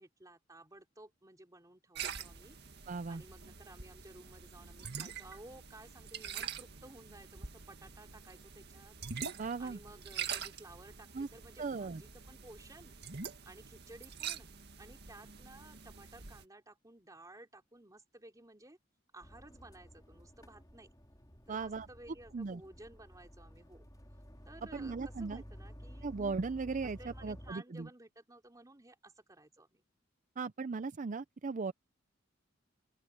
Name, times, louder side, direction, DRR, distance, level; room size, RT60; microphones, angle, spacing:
voice 1, 0.0-2.6 2.8-9.0 9.6-12.9 13.4-14.5 14.8-18.8 19.1-20.9 21.5-23.9 24.4-26.1 26.8-29.8, right 2 dB, 20° right, 3.3 m, -56 dB
sound 1, 1.9-16.4, right 7 dB, 60° right, 1.9 m, -45 dB
voice 2, 2.9-3.2 9.4-9.8 11.1-11.3 11.6-12.0 21.5-21.9 22.3-22.6 24.7-25.4 26.0-27.9 30.4-31.7, right 4 dB, 40° right, 0.5 m, -37 dB
sound 2, 19.2-27.5, equal, 20° left, 4.5 m, -53 dB
open air
head